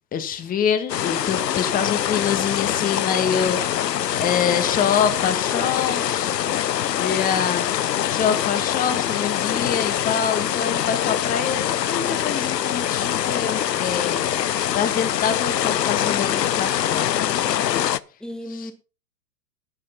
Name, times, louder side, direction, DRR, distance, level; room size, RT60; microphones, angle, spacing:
voice 1, 0.1-6.3 6.9-7.7 8.1-14.2 14.7-18.0, left 7 dB, 15° left, 1.5 m, -26 dB
sound 1, 0.9-18.0, left 11 dB, 80° left, 0.8 m, -24 dB
voice 2, 4.0-4.4 5.3-6.3 18.2-18.7, equal, ahead, 1.4 m, -37 dB
11.5 x 8.4 x 5.5 m
hypercardioid pair, 120°, 48 cm